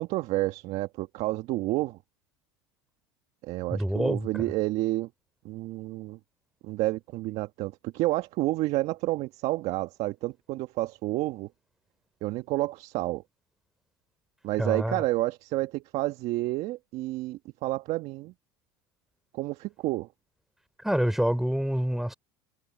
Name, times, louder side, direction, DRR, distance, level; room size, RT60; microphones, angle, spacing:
voice 1, 0.0-2.0 3.4-5.1 5.4-6.2 6.6-11.5 12.2-13.2 14.4-18.3 19.3-20.1, right 18 dB, 55° right, 1.6 m, -30 dB
voice 2, 3.7-4.5 14.6-15.0 20.8-22.1, equal, ahead, 4.1 m, -27 dB
hypercardioid pair, 85°, 13 cm